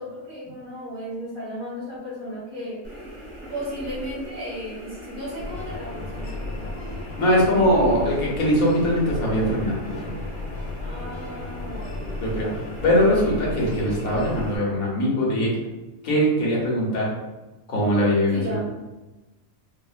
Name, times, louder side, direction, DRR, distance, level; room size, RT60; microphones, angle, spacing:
voice 1, 0.0-2.8 3.5-6.9 7.6-8.1 10.8-12.6 18.3-18.6, equal, 85° right, -7 dB, 2.1 m, -35 dB
sound 1, 2.8-14.6, equal, 60° right, 1.6 m, -40 dB
sound 2, 5.4-14.5, left 2 dB, 50° left, 0.9 m, -34 dB
voice 2, 7.2-10.1 12.2-12.5 12.8-15.5 16.0-17.1 17.7-18.6, equal, 85° left, -4 dB, 1.4 m, -21 dB
4.7 x 2.0 x 2.4 m, 1.1 s
omnidirectional pair, 1.4 m